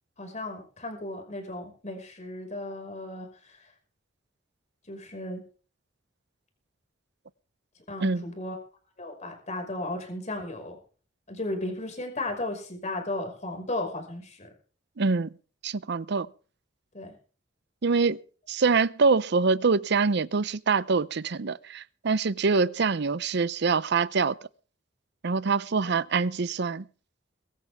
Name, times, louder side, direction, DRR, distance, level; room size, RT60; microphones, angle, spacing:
voice 1, 0.2-3.3 4.9-5.4 7.9-8.6 9.0-10.8 11.3-14.5 16.9-17.1 25.9-26.1, left 2 dB, 40° left, 5.5 m, -35 dB
voice 2, 15.0-15.3 15.6-16.3 17.8-18.2 18.5-24.3 25.2-26.8, right 4 dB, 65° right, 0.6 m, -25 dB
22.5 x 13.0 x 3.5 m
head